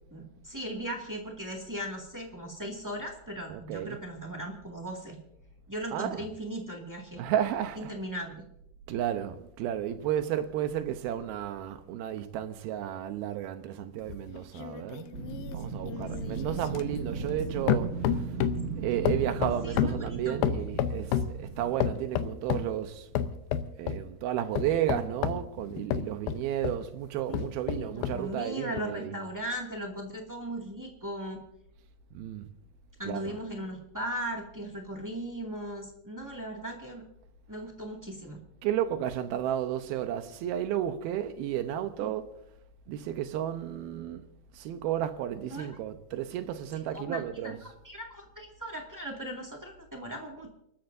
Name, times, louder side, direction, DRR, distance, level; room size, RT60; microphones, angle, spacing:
voice 1, 0.1-5.2 5.7-7.2 7.8-8.4 16.2-16.5 18.9-19.2 19.6-19.9 20.2-20.4 27.3-27.4 27.7-31.4 33.0-37.0 37.5-38.4 42.0-42.1 45.4-45.7 46.9-47.5 47.8-50.5, right 1 dB, 15° right, 0.6 m, -38 dB
voice 2, 3.5-4.0 5.9-6.3 7.2-7.9 8.9-15.1 15.5-18.4 18.8-23.1 23.8-29.2 32.1-32.5 33.0-33.4 38.6-42.4 42.9-47.7, right 11 dB, 80° right, 2.6 m, -33 dB
sound 1, 14.1-17.4 17.7-18.7 19.1-21.4 21.8-22.7 23.2-24.0 24.6-26.8 27.3-28.2 28.8-28.9, left 9 dB, 75° left, 2.4 m, -31 dB
Wind, 15.1-22.1, right 4 dB, 60° right, 1.1 m, -37 dB
30.0 x 13.0 x 2.7 m
omnidirectional pair, 4.6 m